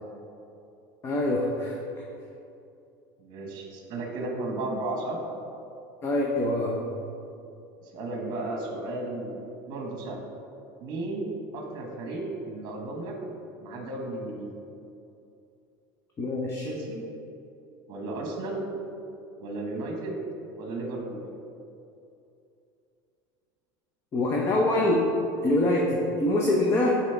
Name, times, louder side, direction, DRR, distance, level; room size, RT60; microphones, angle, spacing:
voice 1, 1.0-1.8 6.0-6.7 16.2-16.7 24.1-25.0 25.4-27.0, left 1 dB, 25° left, -2 dB, 0.7 m, -24 dB
voice 2, 3.2-5.2 7.8-9.4 9.7-10.2 10.8-13.2 13.6-14.5 16.6-17.0 17.9-18.6 19.4-20.2 20.6-21.2, right 2 dB, 45° right, 1 dB, 1.2 m, -34 dB
6.0 x 4.1 x 4.5 m, 2.7 s
supercardioid pair, 130°, 10 cm